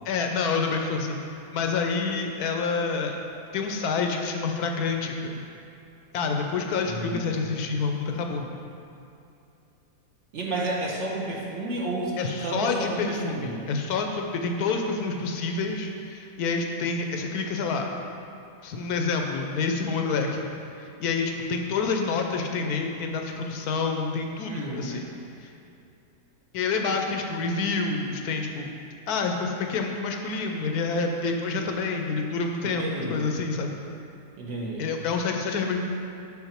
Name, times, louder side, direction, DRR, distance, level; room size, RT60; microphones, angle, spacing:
voice 1, 0.0-1.2 1.5-3.2 3.5-5.4 6.1-8.5 12.2-17.9 18.6-20.5 21.0-25.1 25.4-25.5 26.5-28.7 29.1-33.8 34.8-35.8, left 4 dB, 75° left, 3 dB, 1.1 m, -28 dB
voice 2, 6.8-7.4 10.3-13.7 24.4-25.1 32.6-33.2 34.4-34.8, right 2 dB, 55° right, -3 dB, 1.1 m, -32 dB
5.8 x 5.6 x 4.4 m, 2.7 s
omnidirectional pair, 1.7 m